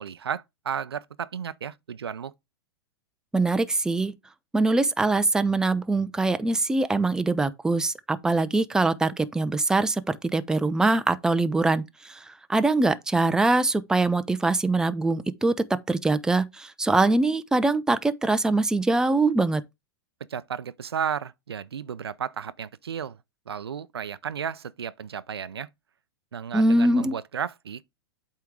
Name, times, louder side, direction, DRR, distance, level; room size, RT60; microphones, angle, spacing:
voice 1, 0.0-2.3 20.3-23.2 23.5-25.7 26.3-27.9, right 7 dB, 90° right, 0.5 m, -33 dB
voice 2, 3.3-4.1 4.5-12.2 12.5-15.5 15.9-19.6 26.5-27.1, right 2 dB, 5° right, 0.5 m, -23 dB
8.2 x 3.7 x 4.7 m
hypercardioid pair, 110°, 13 cm